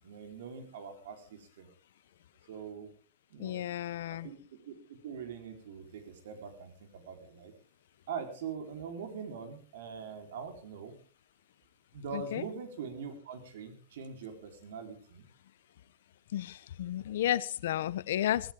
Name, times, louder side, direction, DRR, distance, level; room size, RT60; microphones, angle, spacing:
voice 1, 0.0-1.7 2.5-2.9 3.3-3.6 4.1-4.4 4.7-7.5 8.1-11.0 11.9-15.3, right 6 dB, 80° right, 6 dB, 4.0 m, -43 dB
voice 2, 3.4-4.3 12.1-12.4 16.3-18.5, left 12 dB, 80° left, 18 dB, 0.7 m, -32 dB
17.0 x 16.0 x 3.7 m, 0.39 s
supercardioid pair, 180°, 0 cm